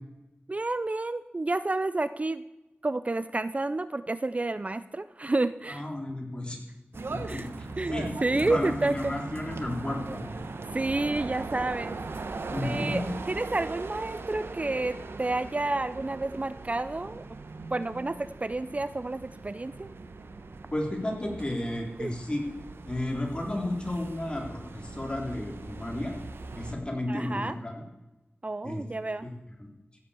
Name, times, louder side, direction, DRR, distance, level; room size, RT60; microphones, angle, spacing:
voice 1, 0.5-2.4 2.8-5.8 7.3-7.5 7.8-7.9 8.2-9.1 10.7-12.0 12.6-17.3 17.7-19.9 22.0-22.1 27.1-27.6 28.4-29.3, right 2 dB, 35° right, 14 dB, 0.5 m, -30 dB
voice 2, 5.7-6.6 7.1-7.4 7.9-8.1 8.3-10.3 12.5-13.0 20.7-22.5 22.9-26.2 26.5-27.8 28.6-28.8 29.2-29.3 29.6-29.7, left 1 dB, 25° left, 1 dB, 3.6 m, -32 dB
sound 1, 6.9-26.7, right 3 dB, 85° right, 1.1 m, -40 dB
15.5 x 8.2 x 7.1 m, 1.0 s
wide cardioid pair, 65°, 4 cm